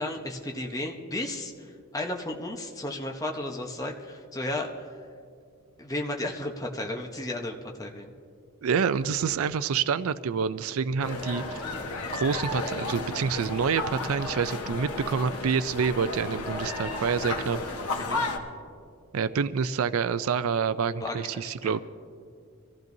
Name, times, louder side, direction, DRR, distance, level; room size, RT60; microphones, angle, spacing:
voice 1, 0.0-4.9 5.8-8.1 18.0-18.2 21.0-21.8, left 1 dB, 15° left, 1 dB, 0.9 m, -34 dB
voice 2, 8.6-11.6 12.1-17.6 19.1-21.8, right 6 dB, 70° right, 14 dB, 0.4 m, -27 dB
sound 1, 11.0-18.4, left 2 dB, 85° left, 1.3 m, -33 dB
25.5 x 14.5 x 2.7 m, 2.3 s
head